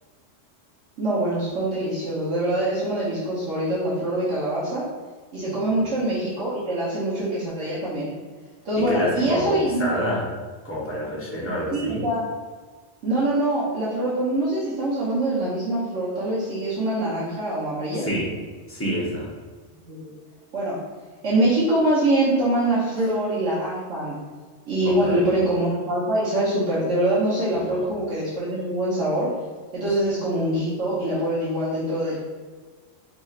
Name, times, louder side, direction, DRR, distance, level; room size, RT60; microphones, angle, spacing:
voice 1, 1.0-4.9 5.3-8.1 8.6-9.8 11.7-12.2 13.0-18.1 19.8-20.1 20.5-20.8 21.2-24.2 24.6-29.3 29.7-32.2, right 1 dB, 70° right, -9 dB, 1.2 m, -24 dB
voice 2, 5.5-5.9 8.8-10.3 10.6-12.0 17.9-18.3 18.7-19.3 24.8-25.3 27.5-27.9, equal, 15° left, -6 dB, 0.7 m, -28 dB
4.1 x 3.0 x 2.4 m, 1.4 s
omnidirectional pair, 1.3 m